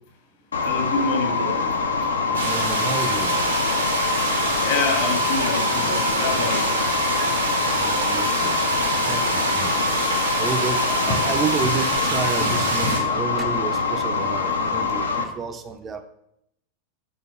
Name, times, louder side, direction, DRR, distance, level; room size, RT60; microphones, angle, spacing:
sound 1, 0.5-15.2, left 4 dB, 70° left, 0.5 m, -24 dB
voice 1, 0.6-1.6 4.6-6.7 9.6-9.8 11.1-11.2 12.4-13.0, left 3 dB, 50° left, 4 dB, 1.2 m, -27 dB
voice 2, 2.3-3.4 7.6-9.8 10.0-16.0, right 6 dB, 25° right, 8 dB, 0.5 m, -31 dB
sound 2, 2.3-13.0, right 3 dB, 75° right, 1.0 m, -26 dB
5.6 x 3.6 x 5.3 m, 0.79 s
figure-of-eight pair, 90°, 0 cm